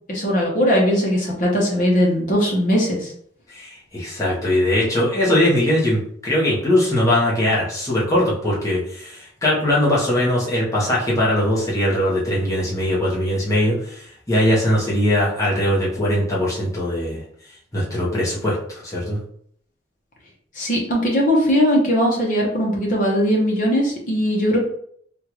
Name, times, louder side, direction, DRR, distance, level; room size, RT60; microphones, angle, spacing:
voice 1, 0.1-3.1 20.6-24.6, equal, 45° left, -2 dB, 1.0 m, -19 dB
voice 2, 3.5-17.2 17.7-19.2, left 1 dB, 20° left, -7 dB, 1.0 m, -20 dB
3.6 x 2.4 x 3.0 m, 0.64 s
head